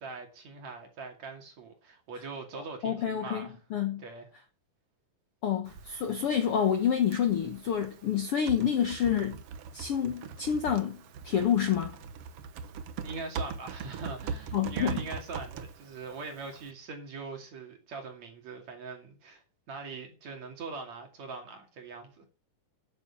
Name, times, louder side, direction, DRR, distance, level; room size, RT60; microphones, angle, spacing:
voice 1, 0.0-3.6 4.0-4.3 13.0-19.4 19.7-22.3, right 4 dB, 55° right, 3.6 m, -42 dB
voice 2, 2.8-4.0 5.4-9.4 9.7-11.9 14.5-15.0, left 8 dB, 60° left, 1.6 m, -28 dB
Typing, 5.6-16.7, right 6 dB, 70° right, 1.4 m, -41 dB
9.8 x 9.0 x 7.1 m
omnidirectional pair, 4.0 m